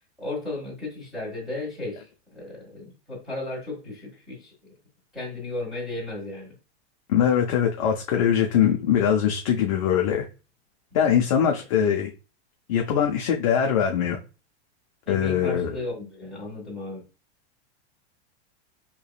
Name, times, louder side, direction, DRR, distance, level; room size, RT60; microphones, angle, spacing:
voice 1, 0.2-4.5 5.1-6.6 11.0-11.2 15.0-17.0, left 2 dB, ahead, 1.5 m, -35 dB
voice 2, 7.1-10.3 10.9-12.1 12.7-14.2 15.1-15.7, left 8 dB, 35° left, 0.4 m, -22 dB
4.6 x 2.9 x 2.3 m
supercardioid pair, 170°, 33 cm